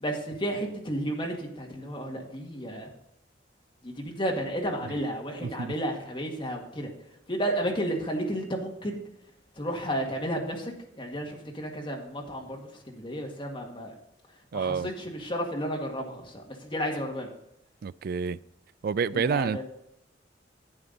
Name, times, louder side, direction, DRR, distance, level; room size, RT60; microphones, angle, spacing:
voice 1, 0.0-2.9 3.8-6.9 7.3-9.0 9.6-13.9 14.5-17.3 19.1-19.6, equal, 30° left, 1.9 m, -32 dB
voice 2, 5.4-5.7 14.5-14.9 17.8-18.4 18.8-19.6, right 6 dB, 55° right, 0.3 m, -28 dB
11.0 x 8.4 x 4.0 m
head